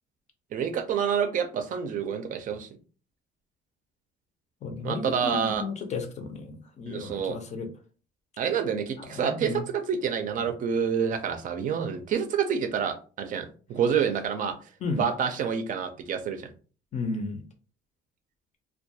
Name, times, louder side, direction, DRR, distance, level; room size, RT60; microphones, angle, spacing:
voice 1, 0.5-2.7 4.8-5.6 6.9-7.4 8.4-14.6 14.9-16.5, right 7 dB, 50° right, 7 dB, 0.4 m, -28 dB
voice 2, 4.6-7.7 9.1-9.6 14.8-15.0 16.9-17.4, left 4 dB, 45° left, 6 dB, 0.5 m, -33 dB
2.2 x 2.2 x 2.6 m, 0.38 s
cardioid pair, 110°, 17 cm